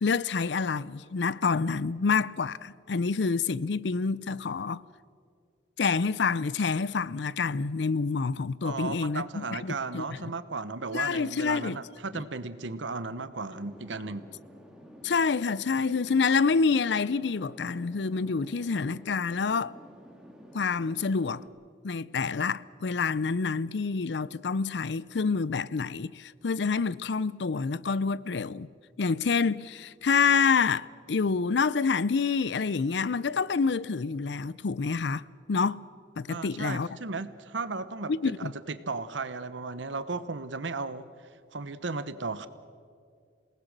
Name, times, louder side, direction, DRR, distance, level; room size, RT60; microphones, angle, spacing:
voice 1, 0.0-4.8 5.8-10.0 10.9-11.8 12.1-12.2 15.0-19.7 20.5-21.4 21.8-28.7 29.0-35.8 36.2-36.9 38.1-38.5, left 5 dB, 65° left, 0.5 m, -27 dB
voice 2, 8.6-14.3 36.3-41.1 41.5-42.5, right 3 dB, 85° right, 1.0 m, -35 dB
sound 1, 13.5-21.5, equal, 5° right, 2.4 m, -51 dB
27.5 x 19.0 x 6.7 m
head